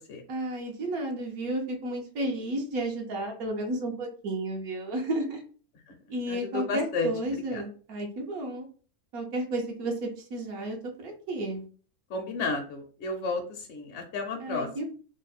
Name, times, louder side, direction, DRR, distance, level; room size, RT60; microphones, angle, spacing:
voice 1, 0.3-5.4 6.1-8.6 9.1-11.6 14.4-14.8, right 1 dB, 85° right, 1 dB, 1.3 m, -32 dB
voice 2, 6.3-7.6 12.1-14.7, left 3 dB, 60° left, 3 dB, 0.8 m, -32 dB
3.4 x 2.1 x 4.1 m, 0.41 s
omnidirectional pair, 1.5 m